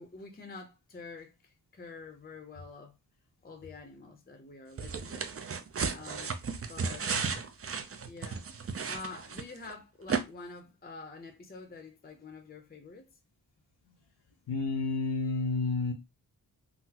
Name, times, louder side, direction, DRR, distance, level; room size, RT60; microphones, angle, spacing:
voice 1, 0.0-3.0 3.4-5.3 5.9-6.3 6.6-7.1 8.1-8.5 8.9-13.1, left 4 dB, 25° left, 0.6 m, -47 dB
sound 1, 4.8-9.7 10.1-10.2, right 5 dB, 35° right, 0.5 m, -34 dB
voice 2, 14.5-15.9, left 3 dB, 75° left, 0.7 m, -30 dB
3.8 x 2.0 x 2.8 m
wide cardioid pair, 75°, 40 cm